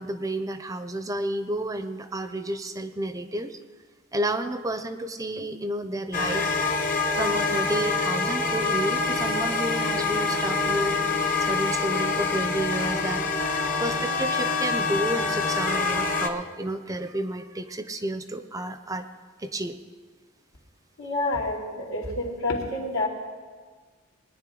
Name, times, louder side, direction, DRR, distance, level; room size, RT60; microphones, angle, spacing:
voice 1, 0.0-3.6 4.1-6.5 7.2-11.0 11.4-13.2 13.8-19.1 19.4-19.8, right 1 dB, 15° right, 9 dB, 0.5 m, -31 dB
sound 1, 6.1-16.3, left 3 dB, 40° left, 1.0 m, -26 dB
voice 2, 21.0-23.1, left 2 dB, 85° left, -4 dB, 2.8 m, -28 dB
20.5 x 10.0 x 3.8 m, 1.5 s
head